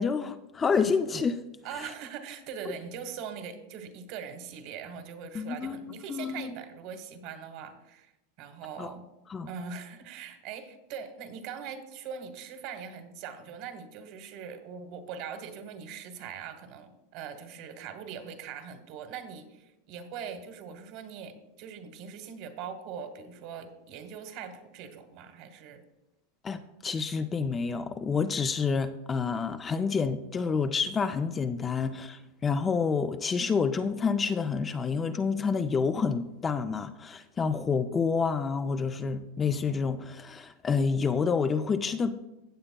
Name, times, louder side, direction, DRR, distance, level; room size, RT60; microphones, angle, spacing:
voice 1, 0.0-1.4 5.3-5.8 6.1-6.5 8.8-8.9 9.3-9.5 26.4-42.1, left 5 dB, 20° left, 9 dB, 0.4 m, -28 dB
voice 2, 1.6-8.1 8.4-9.0 9.5-25.8, right 7 dB, 50° right, 8 dB, 1.2 m, -41 dB
15.5 x 7.8 x 2.2 m, 0.94 s
supercardioid pair, 150°, 0 cm